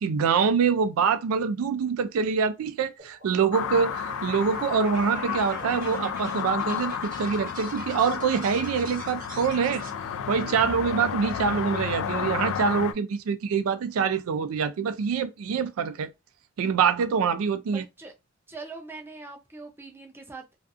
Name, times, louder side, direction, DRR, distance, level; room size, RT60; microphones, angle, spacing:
voice 1, 0.0-9.8 10.3-16.1 16.6-17.8, right 6 dB, 85° right, 0.4 m, -25 dB
sound 1, 3.0-9.9, right 4 dB, 40° right, 0.8 m, -45 dB
sound 2, 3.5-12.9, left 7 dB, 75° left, 0.3 m, -32 dB
voice 2, 17.7-18.1 18.5-20.5, right 3 dB, 10° right, 0.5 m, -42 dB
2.4 x 2.4 x 2.4 m
head